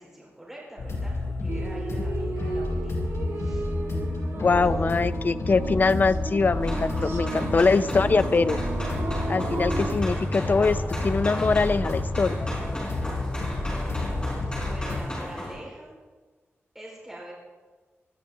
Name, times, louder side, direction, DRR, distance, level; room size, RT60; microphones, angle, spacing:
voice 1, 0.0-3.7 4.7-4.9 13.4-15.9 16.7-17.3, right 1 dB, 5° right, -6 dB, 4.4 m, -45 dB
sound 1, 0.8-15.0, left 2 dB, 85° left, 5.1 m, -30 dB
sound 2, 1.5-10.0, right 3 dB, 65° right, 1.4 m, -34 dB
voice 2, 4.4-8.6 9.3-12.4, left 4 dB, 40° left, 13 dB, 0.4 m, -23 dB
sound 3, 6.6-15.5, equal, 20° left, 5.1 m, -35 dB
19.5 x 13.5 x 3.7 m, 1.4 s
wide cardioid pair, 150°, 5 cm